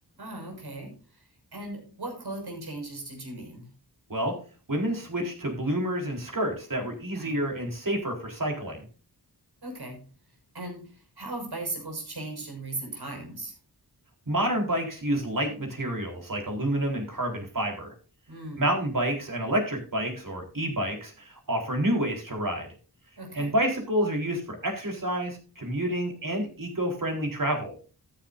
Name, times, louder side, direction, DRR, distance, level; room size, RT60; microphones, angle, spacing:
voice 1, 0.2-3.7 7.1-7.4 9.6-10.1 10.5-13.5 18.3-18.7 23.2-23.5, right 2 dB, 70° right, 2 dB, 6.2 m, -38 dB
voice 2, 4.7-8.9 14.3-17.9 18.6-22.7 23.3-27.7, right 1 dB, 55° right, 2 dB, 4.2 m, -29 dB
13.5 x 10.5 x 2.7 m, 0.37 s
wide cardioid pair, 80°, 39 cm